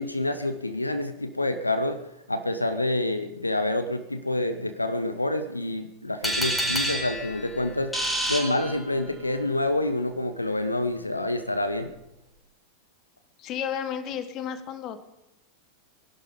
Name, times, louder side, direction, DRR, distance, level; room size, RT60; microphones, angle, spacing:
voice 1, 0.0-2.0 2.3-11.9, left 1 dB, 85° left, 10 dB, 1.0 m, -27 dB
sound 1, 6.2-9.3, right 1 dB, 5° left, 4.2 m, -29 dB
voice 2, 13.4-15.0, left 8 dB, 35° left, 11 dB, 1.6 m, -32 dB
20.5 x 11.5 x 5.3 m, 0.91 s
figure-of-eight pair, 90°, 0 cm